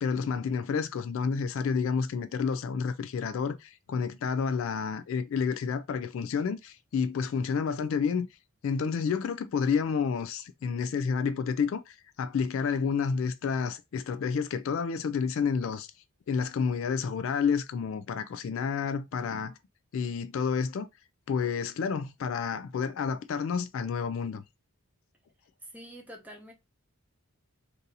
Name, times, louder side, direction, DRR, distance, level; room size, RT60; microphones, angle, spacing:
voice 1, 0.0-8.3 8.6-15.9 16.3-19.6 19.9-20.9 21.3-24.4, left 6 dB, 60° left, 0.3 m, -30 dB
voice 2, 25.6-26.5, equal, 5° right, 0.8 m, -46 dB
2.7 x 2.7 x 3.8 m
head